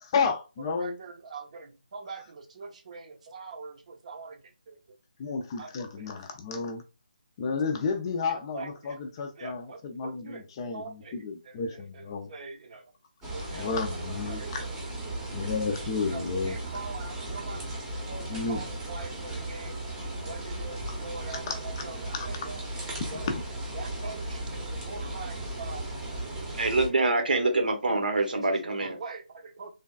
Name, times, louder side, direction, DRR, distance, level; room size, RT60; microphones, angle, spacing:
voice 1, 0.0-1.0 5.2-6.8 7.4-12.3 13.4-14.7 15.3-16.6 18.3-18.7 20.9-21.0 21.5-21.8 22.1-22.3 23.3-23.4, left 5 dB, 25° left, 0.4 m, -32 dB
voice 2, 0.7-4.7 5.6-6.1 8.5-9.0 9.4-10.4 10.7-11.2 11.5-11.6 11.9-12.8 13.3-13.7 14.3-14.7 16.1-17.8 18.1-19.7 20.2-22.6 23.1-23.3 23.7-24.4 24.7-25.8 28.5-29.7, right 4 dB, 45° right, 0.7 m, -43 dB
sound 1, 13.2-26.9, right 1 dB, 10° right, 0.7 m, -36 dB
voice 3, 26.5-29.0, right 2 dB, 70° right, 0.9 m, -25 dB
3.2 x 2.2 x 2.3 m
figure-of-eight pair, 155°, 5 cm